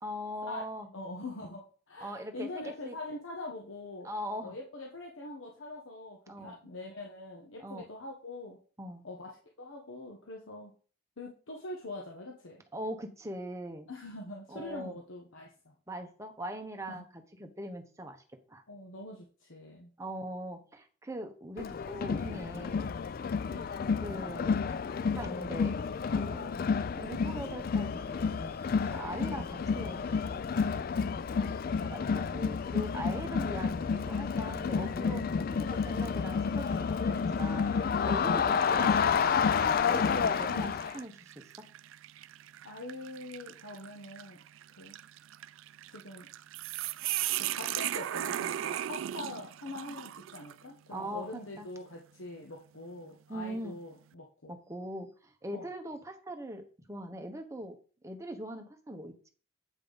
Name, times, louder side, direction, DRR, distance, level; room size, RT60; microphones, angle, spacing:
voice 1, 0.0-0.9 2.0-2.9 4.0-4.6 6.3-6.6 7.6-7.9 8.8-9.0 12.7-13.9 14.5-15.0 15.9-18.6 20.0-22.9 24.0-24.6 25.0-25.8 26.1-26.6 26.9-28.6 28.9-30.7 31.3-37.7 38.1-39.4 39.8-41.5 50.9-51.7 53.3-53.8 54.5-57.8 58.0-59.3, right 1 dB, 15° right, 5 dB, 0.8 m, -41 dB
voice 2, 0.9-4.1 4.4-8.6 9.0-9.3 9.6-10.7 11.2-12.6 13.9-15.7 16.9-17.0 18.7-19.9 23.5-23.7 29.3-29.5 32.9-33.4 42.6-44.4 44.7-45.0 45.9-46.3 47.3-54.5 55.5-55.7, left 2 dB, 75° left, 0 dB, 1.1 m, -43 dB
Crowd, 21.6-41.0, left 5 dB, 45° left, 0.3 m, -30 dB
sound 1, 35.7-36.2 36.7-36.8 37.8-38.0 38.6-50.6, right 13 dB, 75° right, 0.3 m, -38 dB
8.1 x 5.1 x 4.0 m, 0.40 s
head